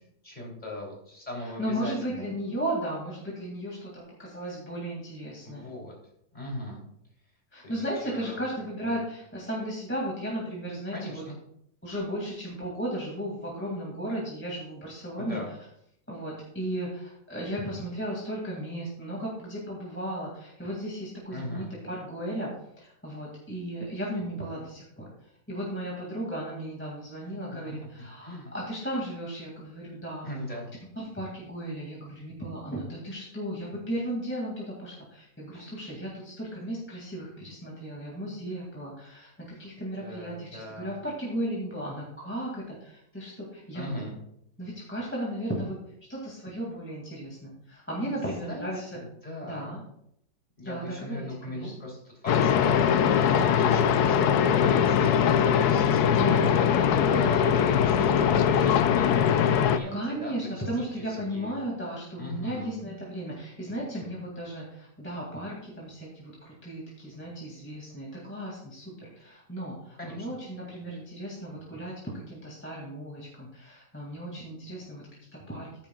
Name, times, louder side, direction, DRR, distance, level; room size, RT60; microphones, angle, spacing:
voice 1, 0.2-2.3 5.4-6.0 6.3-6.8 7.6-7.7 8.0-8.5 8.8-9.0 10.9-11.4 15.2-15.5 21.3-21.7 27.7-27.8 28.2-28.5 30.2-30.7 35.5-35.7 40.0-40.9 43.7-44.1 48.1-49.8 50.6-61.0 61.3-61.5 62.2-62.7 70.0-70.3, left 1 dB, 25° left, -3 dB, 3.5 m, -39 dB
voice 2, 1.6-5.7 7.5-11.2 11.8-15.4 16.1-22.5 22.8-30.6 31.0-44.1 44.6-45.8 46.1-49.0 49.4-49.8 50.6-51.7 55.4-55.6 56.2-56.6 59.9-75.7, right 1 dB, 5° left, -4 dB, 2.3 m, -35 dB
sound 1, 52.3-59.8, left 8 dB, 70° left, 1.1 m, -22 dB
14.0 x 9.9 x 2.4 m, 0.73 s
omnidirectional pair, 1.8 m